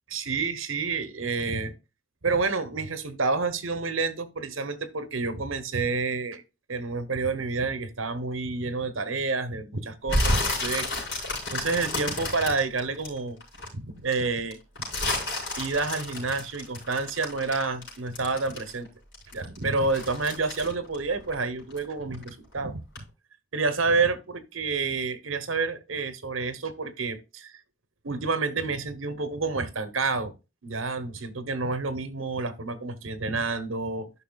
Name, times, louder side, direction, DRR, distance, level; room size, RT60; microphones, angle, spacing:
voice 1, 0.1-1.7 2.2-6.4 6.7-10.9 11.5-13.4 13.7-14.9 15.6-18.9 19.3-22.8 23.5-27.6 28.0-30.3 30.6-34.1, right 4 dB, 75° right, 1.0 m, -29 dB
sound 1, 10.1-13.7 14.1-18.9 19.1-21.8 22.1-22.5 22.9-23.0, left 1 dB, 60° left, 4.7 m, -30 dB
11.0 x 5.7 x 2.3 m
head